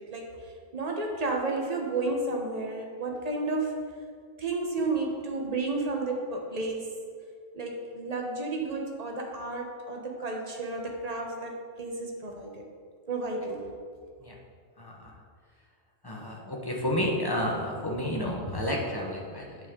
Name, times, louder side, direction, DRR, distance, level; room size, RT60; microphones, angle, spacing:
voice 1, 0.0-3.8 4.4-6.9 7.5-12.6 13.1-13.7, right 2 dB, 35° right, 1 dB, 0.9 m, -32 dB
voice 2, 14.8-15.1 16.0-19.6, left 1 dB, 20° left, -2 dB, 0.9 m, -31 dB
8.0 x 6.5 x 3.7 m, 2.1 s
omnidirectional pair, 1.3 m